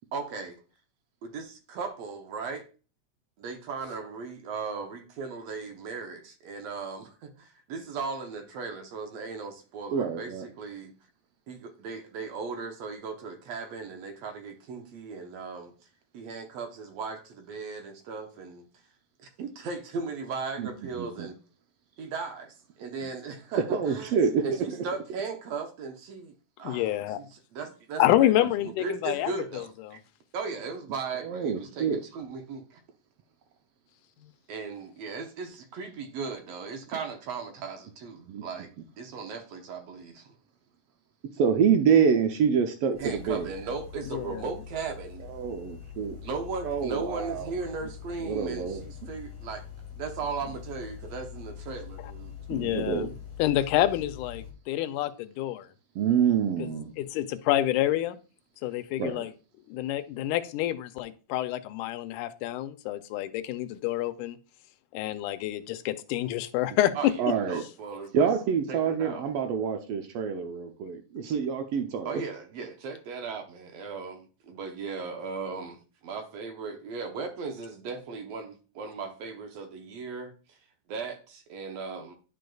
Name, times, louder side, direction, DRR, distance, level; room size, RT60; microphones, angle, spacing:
voice 1, 0.1-0.6 1.2-2.7 3.4-10.9 11.5-15.7 16.1-18.7 19.2-21.4 22.0-24.1 24.4-26.9 27.2-30.0 30.3-32.8 34.5-40.3 43.0-45.2 46.2-49.6 50.0-52.3 67.0-67.1 67.5-68.3 68.7-69.3 72.1-80.6 80.9-82.1, right 4 dB, 70° right, 1.8 m, -37 dB
voice 2, 9.9-10.4 20.6-21.3 23.0-23.1 23.7-24.6 31.2-32.0 38.2-38.4 41.3-43.5 45.3-46.2 46.6-47.5 48.2-48.8 52.5-53.1 55.9-56.9 59.0-59.2 67.2-67.6 68.1-72.2, right 7 dB, 90° right, 1.3 m, -26 dB
voice 3, 26.6-27.2 28.0-30.0 44.1-44.5 52.5-53.1 53.4-55.7 56.6-56.7 57.0-58.2 58.6-59.3 59.7-64.4 64.9-67.1, left 13 dB, 85° left, 2.1 m, -28 dB
sound 1, 42.9-54.5, left 8 dB, 45° left, 1.2 m, -44 dB
11.0 x 5.2 x 2.3 m
omnidirectional pair, 3.5 m